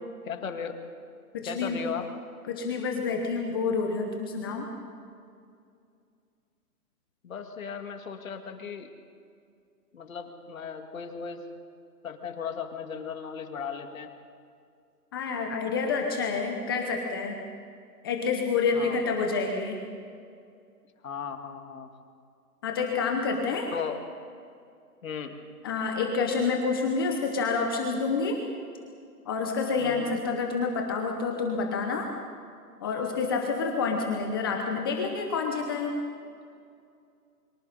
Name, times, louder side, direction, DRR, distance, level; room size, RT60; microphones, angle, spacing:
voice 1, 0.2-0.8 1.4-2.1 7.2-8.9 9.9-11.4 12.0-14.1 18.7-19.0 21.0-21.9 23.7-24.0 25.0-25.3 29.8-30.2, left 6 dB, 55° left, 5 dB, 2.4 m, -36 dB
voice 2, 1.3-1.8 2.5-4.7 15.1-17.4 18.0-19.8 22.6-23.7 25.6-28.4 29.2-32.1 32.8-35.9, left 4 dB, 15° left, 2 dB, 0.9 m, -28 dB
28.5 x 23.5 x 4.2 m, 2.4 s
hypercardioid pair, 155°, 47 cm